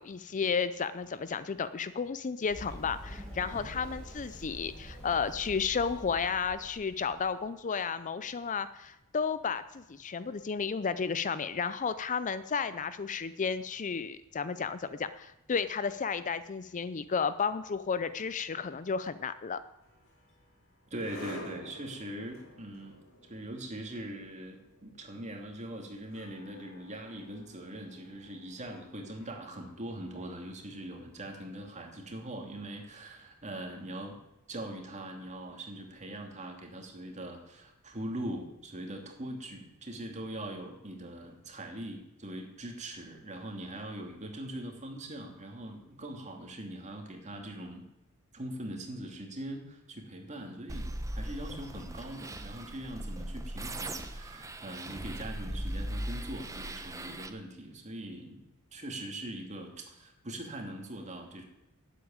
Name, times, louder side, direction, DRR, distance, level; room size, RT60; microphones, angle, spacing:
voice 1, 0.0-19.6, left 6 dB, 35° left, 13 dB, 0.5 m, -33 dB
Run, 2.5-7.3, equal, 5° left, 6.6 m, -46 dB
sound 1, 19.8-30.9, left 1 dB, 60° left, 5.1 m, -52 dB
voice 2, 20.9-23.0 23.2-34.2 34.5-47.9 48.3-58.4 58.7-61.4, right 1 dB, 30° right, 2 dB, 2.6 m, -42 dB
sound 2, 50.7-57.3, right 1 dB, 15° right, 0.9 m, -39 dB
12.0 x 8.5 x 8.8 m, 0.94 s
head